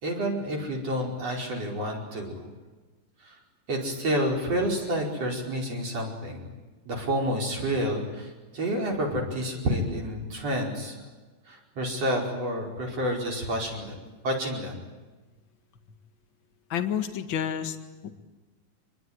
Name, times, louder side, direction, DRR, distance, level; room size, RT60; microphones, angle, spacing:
voice 1, 0.0-2.5 3.2-3.4 3.7-6.4 6.8-11.0 11.5-13.9 14.2-14.8, equal, 45° right, 0 dB, 6.0 m, -29 dB
voice 2, 16.7-17.8 18.0-18.1, left 9 dB, 45° left, 7 dB, 1.8 m, -29 dB
26.0 x 22.0 x 9.7 m, 1.2 s
omnidirectional pair, 4.2 m